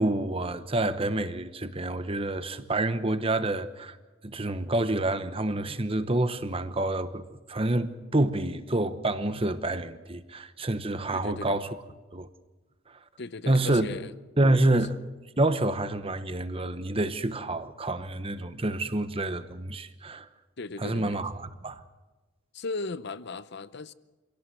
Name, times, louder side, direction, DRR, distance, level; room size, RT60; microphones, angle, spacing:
voice 1, 0.0-4.0 4.2-11.7 12.1-12.3 12.9-13.0 13.5-13.9 14.4-15.0 15.4-20.3 20.8-21.8, right 2 dB, 25° right, 1.1 m, -28 dB
voice 2, 11.1-11.6 13.2-14.1 14.6-14.8 20.6-21.2 22.5-23.9, left 3 dB, 55° left, 0.7 m, -37 dB
26.0 x 17.0 x 7.9 m
head